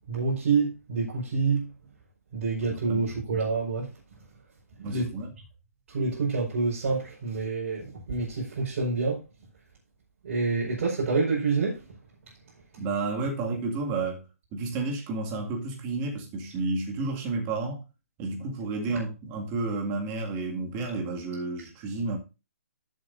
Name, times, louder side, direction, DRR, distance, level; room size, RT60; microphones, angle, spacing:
voice 1, 0.1-1.7 2.3-3.9 4.8-5.1 5.9-9.2 10.2-11.8, right 4 dB, 55° right, 5.2 m, -27 dB
voice 2, 2.6-3.1 4.8-5.3 12.8-14.2 14.5-17.8 18.2-22.2, right 3 dB, 25° right, 2.2 m, -31 dB
14.0 x 7.4 x 2.7 m
hypercardioid pair, 150°, 8 cm